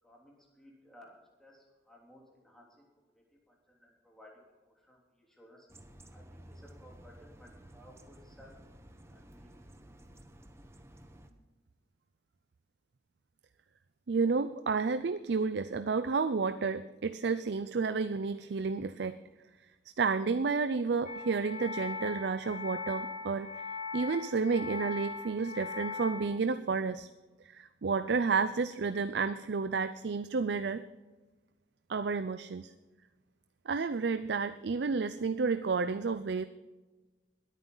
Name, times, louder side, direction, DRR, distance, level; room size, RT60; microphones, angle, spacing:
voice 1, 0.0-2.8 3.1-5.7 6.1-8.5 9.0-9.9, equal, 5° left, -3 dB, 3.2 m, -58 dB
sound 1, 5.7-11.3, right 1 dB, 15° right, 0.9 m, -54 dB
voice 2, 14.1-19.2 20.0-23.7 23.9-27.1 27.4-30.8 31.9-32.7 33.7-36.5, right 4 dB, 75° right, 12 dB, 0.5 m, -31 dB
sound 2, 21.1-26.2, left 4 dB, 45° left, 1.9 m, -40 dB
21.5 x 9.2 x 3.9 m, 1.2 s
head